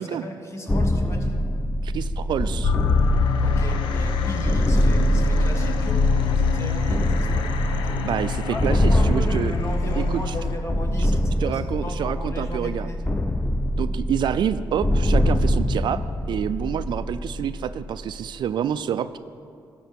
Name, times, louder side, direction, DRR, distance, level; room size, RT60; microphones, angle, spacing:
voice 1, 0.0-1.4 3.4-8.1 8.5-13.0, left 1 dB, 35° left, 2 dB, 1.6 m, -36 dB
sound 1, 0.7-18.4, equal, 15° left, 0.6 m, -24 dB
voice 2, 1.8-2.7 8.0-9.5 9.9-10.2 11.4-12.9 13.8-16.0 16.3-19.2, right 9 dB, 70° right, 13 dB, 0.4 m, -27 dB
sound 2, 2.6-10.6, left 6 dB, 90° left, 0.6 m, -26 dB
13.0 x 4.5 x 7.6 m, 2.5 s
cardioid pair, 65°, 8 cm